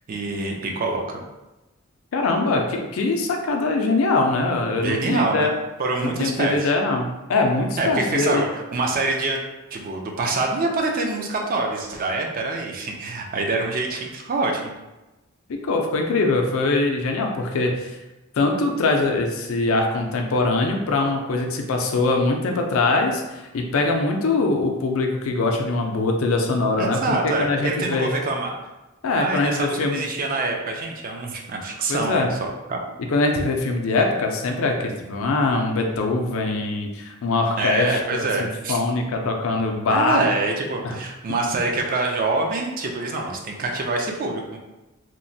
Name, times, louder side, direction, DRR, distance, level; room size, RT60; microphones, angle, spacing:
voice 1, 0.1-1.2 4.8-5.5 5.8-6.7 7.8-9.4 9.7-14.7 26.8-28.5 29.1-32.8 37.6-38.8 39.9-44.6, right 3 dB, 40° right, 1 dB, 0.4 m, -25 dB
voice 2, 2.1-5.5 6.0-8.4 15.5-18.0 18.3-28.1 29.0-30.0 31.9-32.3 33.1-40.2 40.8-41.0, left 3 dB, 70° left, 3 dB, 0.4 m, -22 dB
2.9 x 2.1 x 2.6 m, 1.0 s
head